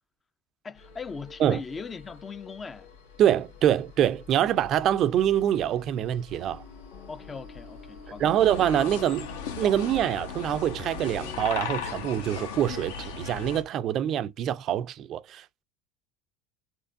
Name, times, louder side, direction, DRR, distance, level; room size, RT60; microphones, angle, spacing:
voice 1, 0.6-2.9 7.1-8.3, left 5 dB, 25° left, 0.4 m, -39 dB
sound 1, 0.7-11.4, left 6 dB, 90° left, 1.6 m, -50 dB
voice 2, 3.2-6.6 8.2-9.3 9.6-15.6, right 10 dB, 50° right, 0.3 m, -25 dB
sound 2, 6.3-11.5, left 4 dB, 50° left, 1.1 m, -48 dB
sound 3, 8.4-13.6, left 6 dB, 75° left, 0.8 m, -36 dB
4.4 x 3.0 x 2.5 m
hypercardioid pair, 75°, 0 cm